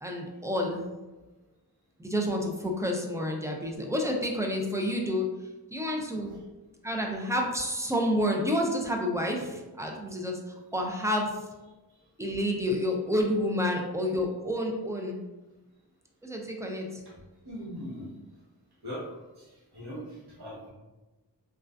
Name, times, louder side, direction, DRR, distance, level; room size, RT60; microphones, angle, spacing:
voice 1, 0.0-0.8 2.0-5.2 5.7-6.3 6.8-10.4 10.7-11.3 12.2-15.2 16.2-16.9, equal, 10° right, 1 dB, 0.3 m, -29 dB
voice 2, 17.4-18.1 18.8-20.7, equal, 70° right, -6 dB, 1.0 m, -41 dB
2.4 x 2.3 x 2.2 m, 1.1 s
wide cardioid pair, 50°, 41 cm